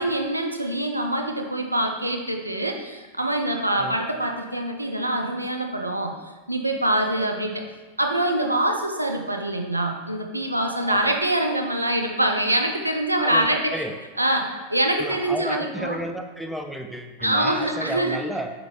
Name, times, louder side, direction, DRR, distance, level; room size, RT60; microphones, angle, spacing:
voice 1, 0.0-6.1 6.5-7.6 8.0-13.8 14.2-16.0 17.2-18.2, right 1 dB, 85° right, 3 dB, 0.4 m, -24 dB
voice 2, 10.8-11.2 13.2-14.0 15.0-18.5, equal, ahead, 3 dB, 0.3 m, -32 dB
4.6 x 3.8 x 2.3 m, 1.3 s
figure-of-eight pair, 90°, 0 cm